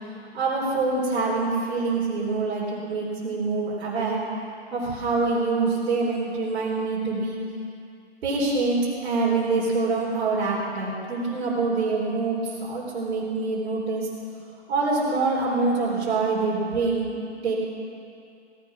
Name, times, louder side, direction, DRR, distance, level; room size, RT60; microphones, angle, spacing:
voice 1, 0.3-4.2 4.7-7.4 8.2-14.1 14.7-17.1 17.4-17.5, right 3 dB, 65° right, -6 dB, 4.1 m, -25 dB
17.5 x 9.9 x 6.0 m, 2.4 s
hypercardioid pair, 140°, 35 cm